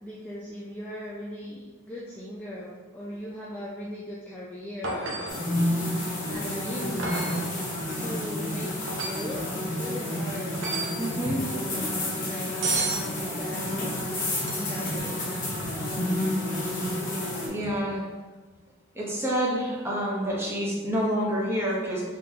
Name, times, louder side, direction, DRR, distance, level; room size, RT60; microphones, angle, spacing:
voice 1, 0.0-5.4 6.3-7.5 7.9-10.6 12.3-12.7 13.3-13.9 14.5-15.6 18.6-18.7, equal, 5° left, -6 dB, 0.3 m, -39 dB
sound 1, 4.8-5.5 7.0-7.5 8.9-9.3 10.5-11.0 12.6-13.1 14.4-14.9 17.7-17.8, right 3 dB, 55° right, 0.6 m, -31 dB
sound 2, 5.3-17.5, left 1 dB, 35° left, 1.0 m, -30 dB
voice 2, 11.0-11.4 11.8-11.9 16.2-16.5 17.5-18.0 18.9-22.0, equal, 10° right, -5 dB, 0.8 m, -28 dB
3.8 x 3.6 x 2.8 m, 1.3 s
head